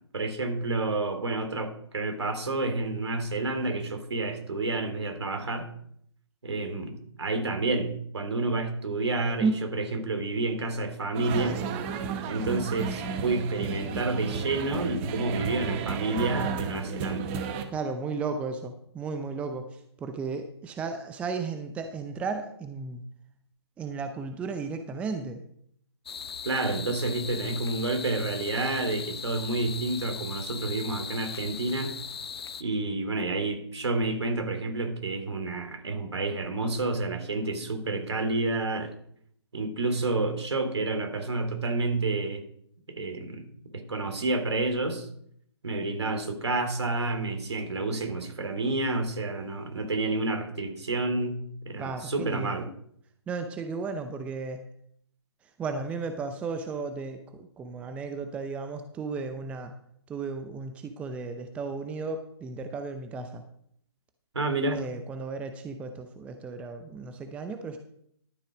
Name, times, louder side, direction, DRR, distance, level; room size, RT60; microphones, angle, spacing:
voice 1, 0.1-5.7 6.4-7.9 8.1-11.6 12.2-17.2 26.4-31.9 32.6-38.9 39.5-42.4 42.9-43.5 43.7-45.1 45.6-51.4 51.6-52.7 64.3-64.8, right 2 dB, 70° right, 6 dB, 3.0 m, -29 dB
sound 1, 11.1-17.6, right 6 dB, 25° right, 1.2 m, -33 dB
voice 2, 17.7-23.0 23.8-25.4 51.8-52.7 53.3-54.6 55.6-59.7 60.1-63.4 64.7-67.8, right 4 dB, 10° right, 7 dB, 0.6 m, -34 dB
sound 2, 26.1-32.6, left 6 dB, 60° left, 0.7 m, -39 dB
12.0 x 7.1 x 5.0 m, 0.68 s
figure-of-eight pair, 140°, 14 cm